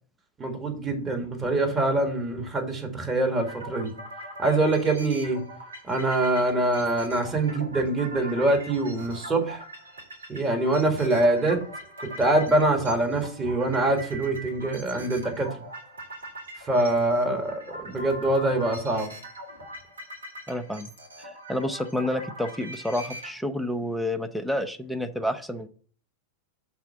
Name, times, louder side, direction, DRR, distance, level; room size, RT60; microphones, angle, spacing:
voice 1, 0.4-3.9 4.4-5.4 5.8-9.6 10.3-11.6 12.0-15.6 16.7-19.1, right 2 dB, 15° right, 2 dB, 1.7 m, -24 dB
sound 1, 3.4-23.3, right 1 dB, 80° right, 1.8 m, -42 dB
voice 2, 20.5-20.9 21.2-25.7, left 1 dB, ahead, 9 dB, 0.6 m, -29 dB
5.8 x 4.2 x 5.7 m, 0.43 s
figure-of-eight pair, 90°, 0 cm